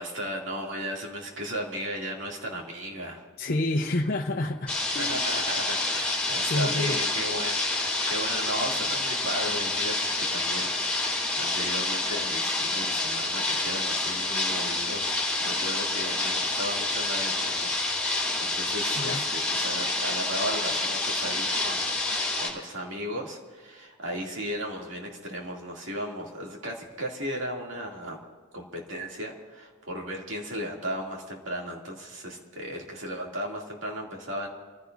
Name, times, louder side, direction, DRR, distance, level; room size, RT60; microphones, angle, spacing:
voice 1, 0.0-3.2 5.0-17.7 18.4-28.2 28.5-34.5, equal, 70° right, -1 dB, 2.6 m, -36 dB
voice 2, 3.4-5.2 6.4-7.0 19.0-19.2, left 2 dB, 50° left, 0 dB, 0.8 m, -28 dB
sound 1, 4.7-22.5, left 2 dB, 5° left, 3.4 m, -28 dB
27.5 x 15.5 x 2.6 m, 1.5 s
head